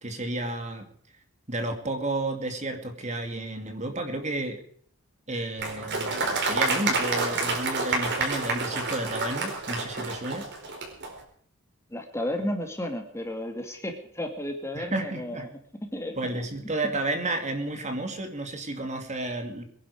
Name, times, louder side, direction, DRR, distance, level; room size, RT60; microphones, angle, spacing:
voice 1, 0.0-0.8 1.5-4.6 5.3-10.4 14.7-15.5 16.1-19.6, right 2 dB, 30° right, 5 dB, 2.6 m, -32 dB
Applause, 5.6-11.1, right 3 dB, 50° right, 4.7 m, -28 dB
voice 2, 11.9-15.5 15.9-16.2, left 1 dB, 10° left, 4 dB, 2.5 m, -33 dB
23.5 x 11.0 x 5.0 m, 0.62 s
head